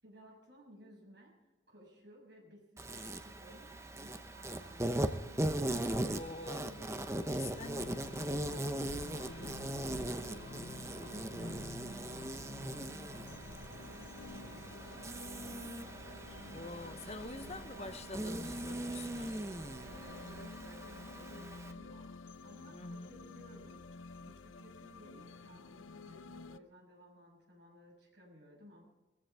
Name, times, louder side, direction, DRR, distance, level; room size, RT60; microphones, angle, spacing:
voice 1, 0.0-15.8 17.1-18.0 19.8-23.9 24.2-28.8, equal, 60° right, 6.5 m, -57 dB
Insect, 2.8-21.7, right 1 dB, 15° right, 0.8 m, -39 dB
voice 2, 5.9-7.0 7.3-7.9 11.4-11.7 16.5-19.4 22.7-23.2, left 2 dB, 30° left, 0.8 m, -46 dB
sound 1, 7.3-26.6, left 4 dB, 80° left, 0.6 m, -51 dB
sound 2, 9.1-20.5, right 1 dB, 80° right, 1.4 m, -54 dB
20.0 x 15.0 x 3.5 m
head